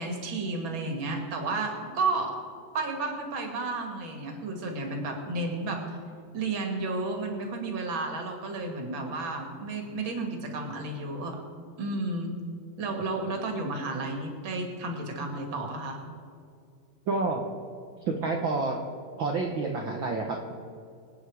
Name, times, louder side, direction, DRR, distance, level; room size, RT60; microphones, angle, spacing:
voice 1, 0.0-2.4 2.7-5.8 6.3-11.4 11.8-12.3 12.8-16.0, right 3 dB, 40° right, 3 dB, 2.6 m, -32 dB
voice 2, 17.1-17.4 18.0-18.8 19.2-20.5, right 3 dB, 80° right, 2 dB, 1.1 m, -29 dB
25.5 x 9.2 x 4.9 m, 2.4 s
omnidirectional pair, 4.0 m